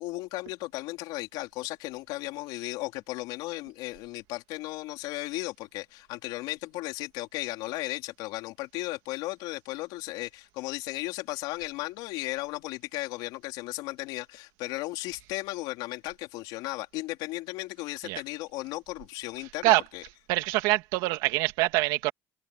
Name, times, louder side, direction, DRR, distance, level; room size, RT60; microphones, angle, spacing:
voice 1, 0.0-20.0, left 19 dB, 85° left, 3.8 m, -35 dB
voice 2, 20.3-22.1, right 19 dB, 90° right, 2.1 m, -24 dB
cardioid pair, 110°, 7 cm